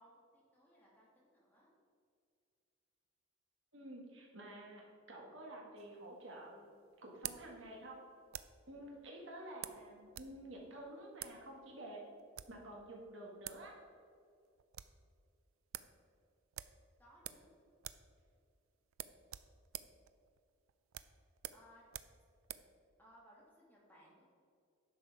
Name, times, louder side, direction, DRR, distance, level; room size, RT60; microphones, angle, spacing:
voice 1, 0.0-1.7 17.0-17.5 21.5-21.8 23.0-24.3, equal, 10° left, -6 dB, 2.3 m, -64 dB
voice 2, 3.7-6.6 7.0-8.0 8.7-12.0 12.5-13.7, right 1 dB, 65° right, -1 dB, 1.7 m, -50 dB
sound 1, 5.8-8.7 9.6-10.4 10.6-10.7 11.1-11.4 12.2-12.6 13.2-13.3 13.4-13.7 14.0-14.1 14.4-15.0 15.4-15.5 15.7-16.0 16.5-17.5 17.8-18.1 18.4-18.5 18.9-22.7, right 12 dB, 85° right, 0.4 m, -49 dB
10.5 x 6.4 x 4.6 m, 2.3 s
head